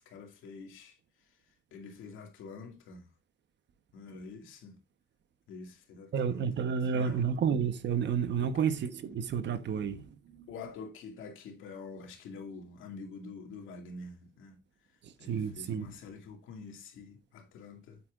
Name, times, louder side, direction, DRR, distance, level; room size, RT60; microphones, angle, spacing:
voice 1, 0.1-1.4 1.7-3.1 3.9-4.8 5.5-7.3 8.4-8.6 10.5-14.6 15.2-18.0, left 4 dB, 85° left, 2.3 m, -47 dB
voice 2, 6.1-10.5 15.0-15.9, right 7 dB, 60° right, 1.2 m, -31 dB
8.7 x 8.4 x 2.5 m
cardioid pair, 90°, 20 cm